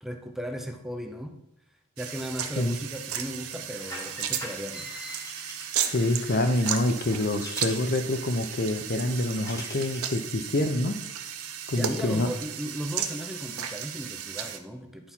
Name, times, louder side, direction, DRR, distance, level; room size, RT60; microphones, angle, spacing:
voice 1, 0.0-1.4 2.0-4.9 11.7-15.1, equal, ahead, 4 dB, 0.6 m, -36 dB
sound 1, 2.0-14.6, right 9 dB, 85° right, 0.8 m, -35 dB
sound 2, 3.7-10.1, left 1 dB, 15° left, 1.8 m, -44 dB
voice 2, 5.9-11.0 11.7-12.3, left 1 dB, 45° left, 9 dB, 0.6 m, -26 dB
10.0 x 4.4 x 5.5 m, 0.85 s
head